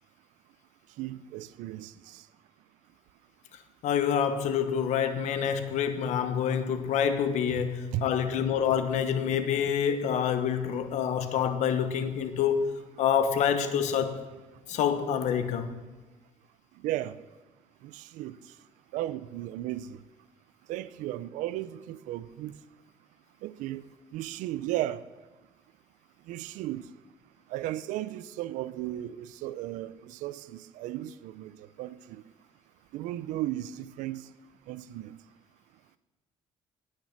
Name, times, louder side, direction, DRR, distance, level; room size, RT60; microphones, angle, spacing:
voice 1, 1.0-2.2 7.6-8.1 16.8-17.2 17.8-18.4 18.9-20.0 20.7-22.5 23.4-23.8 24.1-25.0 26.3-26.8 27.5-31.5 31.8-32.2 32.9-34.2 34.7-35.1, right 14 dB, 90° right, 0.5 m, -35 dB
voice 2, 3.8-14.2 14.7-15.7, left 8 dB, 70° left, 1.1 m, -27 dB
19.0 x 6.6 x 6.0 m
cardioid pair, 125°, 13 cm